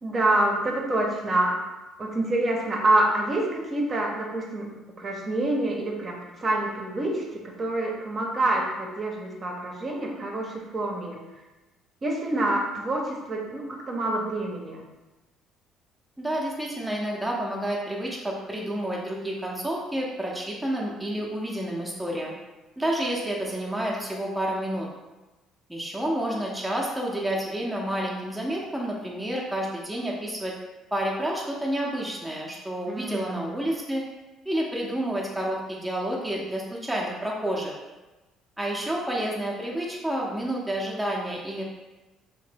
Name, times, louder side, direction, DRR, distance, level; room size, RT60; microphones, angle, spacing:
voice 1, 0.0-1.6 2.0-4.7 5.0-11.2 12.0-14.8 32.9-33.5, right 1 dB, 40° right, -1 dB, 0.7 m, -27 dB
voice 2, 16.2-22.3 22.8-24.9 25.7-30.5 30.9-34.0 34.5-37.7 38.6-41.6, right 1 dB, 5° right, -3 dB, 0.6 m, -29 dB
2.7 x 2.1 x 3.3 m, 1.1 s
hypercardioid pair, 60°, 0 cm